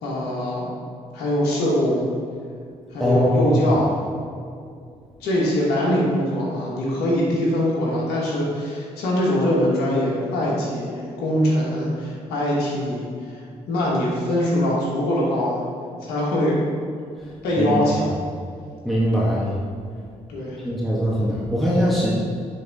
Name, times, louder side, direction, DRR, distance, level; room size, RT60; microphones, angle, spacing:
voice 1, 0.0-0.7 1.1-2.0 2.9-3.9 5.2-13.4 13.7-15.6 16.0-16.6 17.4-18.1 20.3-20.6, left 1 dB, 80° left, -5 dB, 1.3 m, -22 dB
voice 2, 3.0-3.6 17.6-17.9 18.8-19.6 20.6-22.1, equal, ahead, -7 dB, 1.5 m, -21 dB
9.4 x 3.7 x 3.5 m, 2.4 s
hypercardioid pair, 45°, 16 cm